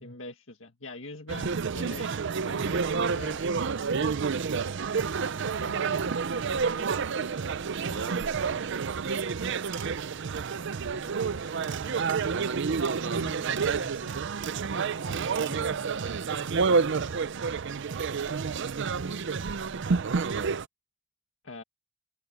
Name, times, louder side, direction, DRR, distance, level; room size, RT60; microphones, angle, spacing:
voice 1, 0.0-4.1 5.4-5.6 21.4-21.6, left 3 dB, 70° left, 1.9 m, -44 dB
sound 1, 1.3-20.7, right 5 dB, 60° right, 0.6 m, -29 dB
voice 2, 5.5-8.7 8.9-9.4 10.9-14.2 14.6-17.7, left 1 dB, 50° left, 7.6 m, -51 dB
open air
head